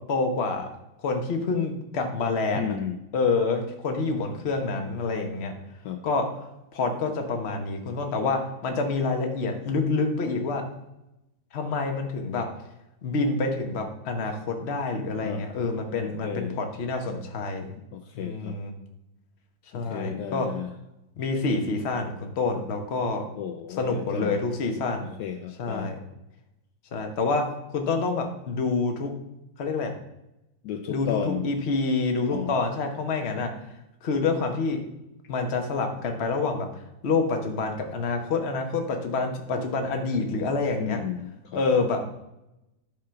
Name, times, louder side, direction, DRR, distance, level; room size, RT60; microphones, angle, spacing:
voice 1, 0.1-0.7 1.0-2.8 3.1-5.5 6.0-6.3 6.7-10.6 11.5-12.5 13.0-17.8 18.1-18.7 19.7-20.5 21.2-23.2 23.8-25.1 25.6-26.0 26.9-29.1 29.6-29.9 30.9-33.5 34.0-34.8 35.3-36.7 37.0-41.0 41.5-42.1, left 3 dB, 40° left, 4 dB, 1.1 m, -27 dB
voice 2, 2.5-3.0 5.8-6.0 15.2-15.4 16.0-16.6 17.9-18.6 19.7-20.7 23.1-24.4 25.2-25.9 30.6-31.5 32.3-32.6 40.8-41.8, left 9 dB, 70° left, 6 dB, 1.2 m, -33 dB
10.5 x 3.8 x 5.7 m, 0.89 s
omnidirectional pair, 2.1 m